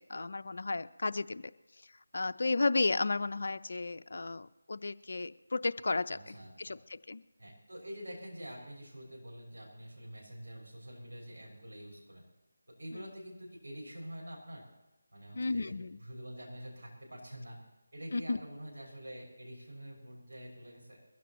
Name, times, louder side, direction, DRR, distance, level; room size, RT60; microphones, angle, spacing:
voice 1, 0.0-1.4 2.1-7.2 12.9-13.0 15.3-16.0 18.1-18.4, left 3 dB, 60° left, 11 dB, 0.6 m, -33 dB
voice 2, 6.1-6.7 7.4-12.3 12.7-14.7 15.1-17.6 17.9-21.0, equal, 75° right, -2 dB, 6.4 m, -47 dB
22.0 x 15.5 x 3.1 m, 1.0 s
figure-of-eight pair, 170°, 0 cm